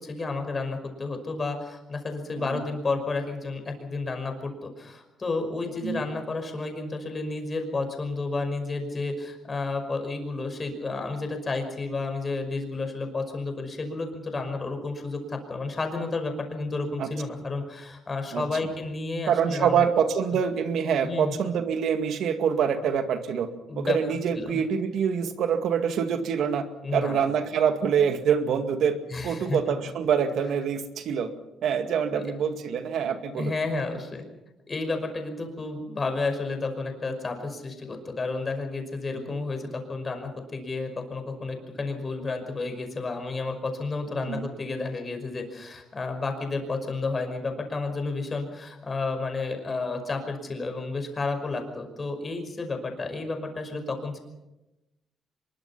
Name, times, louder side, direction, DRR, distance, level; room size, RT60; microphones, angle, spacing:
voice 1, 0.0-19.8 20.3-20.4 21.0-21.4 23.7-24.0 24.3-24.7 26.8-27.3 29.1-29.6 32.1-32.2 33.4-34.3 34.7-54.2, left 3 dB, 35° left, 5 dB, 5.5 m, -31 dB
voice 2, 19.3-23.5 23.8-26.7 26.9-29.0 29.2-31.3 31.6-33.5 39.3-39.4 44.2-44.5, right 7 dB, 75° right, 7 dB, 2.1 m, -25 dB
24.0 x 22.0 x 5.8 m, 0.97 s
cardioid pair, 90°, 0 cm